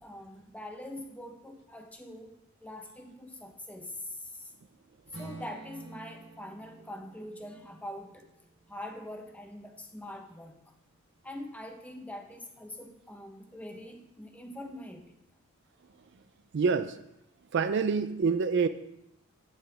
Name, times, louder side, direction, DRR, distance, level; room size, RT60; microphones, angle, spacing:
voice 1, 0.0-2.3 2.6-4.5 5.2-8.2 8.7-10.7 11.2-15.2, left 1 dB, 5° left, 0.9 m, -43 dB
Strum, 5.1-9.3, right 3 dB, 80° right, 3.6 m, -49 dB
voice 2, 16.5-17.0 17.5-18.7, right 5 dB, 55° right, 0.4 m, -26 dB
11.0 x 8.7 x 3.4 m
head